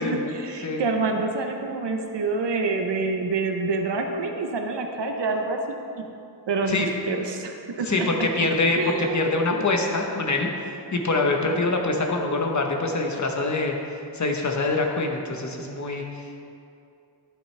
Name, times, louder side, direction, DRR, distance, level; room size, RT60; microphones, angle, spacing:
voice 1, 0.0-5.6 5.9-6.0 6.5-8.3 8.8-9.2 9.5-9.7 11.4-11.7, right 3 dB, 70° right, 3 dB, 0.9 m, -27 dB
voice 2, 7.9-10.5 10.9-13.8 14.1-16.4, left 2 dB, 40° left, 2 dB, 1.0 m, -24 dB
11.5 x 8.3 x 3.3 m, 2.6 s
wide cardioid pair, 135°, 44 cm